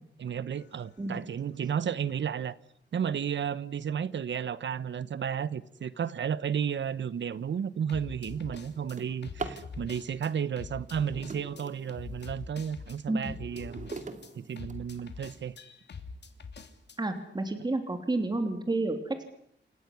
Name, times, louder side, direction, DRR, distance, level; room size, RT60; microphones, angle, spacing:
voice 1, 0.2-2.6 2.9-13.9 14.4-15.6, right 8 dB, 75° right, 1.1 m, -33 dB
sound 1, 0.6-0.8 7.9-10.3 10.6-17.0, left 5 dB, 65° left, 3.2 m, -44 dB
Drawer open or close, 7.0-7.2 7.7-9.7 10.8-12.4 12.9-15.3 16.0-16.1 16.6-16.7 17.0-17.4, right 3 dB, 40° right, 2.6 m, -43 dB
voice 2, 17.0-19.2, right 2 dB, 20° right, 3.2 m, -30 dB
28.5 x 15.0 x 9.9 m
wide cardioid pair, 110°, 19 cm